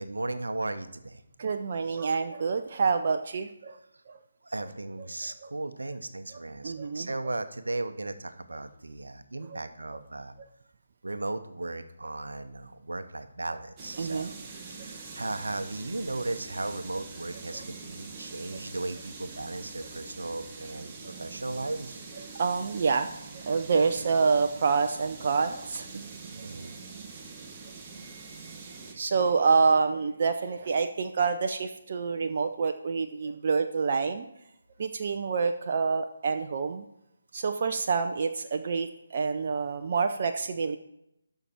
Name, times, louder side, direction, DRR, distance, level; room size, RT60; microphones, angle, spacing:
voice 1, 0.0-1.2 4.4-10.3 11.0-14.3 14.7-20.9 21.2-22.0 26.4-26.7, right 2 dB, 70° right, 9 dB, 0.9 m, -36 dB
voice 2, 1.4-3.8 5.0-5.1 5.4-5.5 6.6-7.1 10.4-10.5 14.0-14.3 17.5-17.6 22.3-23.1 23.3-26.0 26.3-26.5 28.9-34.2 34.8-36.9 37.3-40.8, right 5 dB, 40° right, 6 dB, 0.6 m, -27 dB
sound 1, 13.8-28.9, right 4 dB, 20° right, 1.3 m, -44 dB
13.0 x 5.8 x 4.4 m, 0.83 s
figure-of-eight pair, 150°, 0 cm